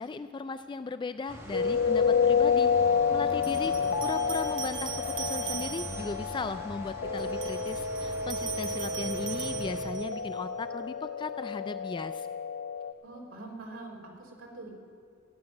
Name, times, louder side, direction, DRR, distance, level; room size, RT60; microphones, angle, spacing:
voice 1, 0.0-2.7 3.1-12.3, left 3 dB, 25° left, 11 dB, 0.3 m, -37 dB
sound 1, 1.3-9.9, equal, 15° right, 1.6 m, -43 dB
sound 2, 1.5-12.9, left 6 dB, 80° left, 1.0 m, -29 dB
sound 3, 2.1-2.2 3.4-6.2 7.2-10.2, right 9 dB, 65° right, 1.4 m, -40 dB
voice 2, 3.4-3.9 13.0-14.7, right 2 dB, 90° right, -2 dB, 3.4 m, -45 dB
15.0 x 7.9 x 9.7 m, 2.5 s
head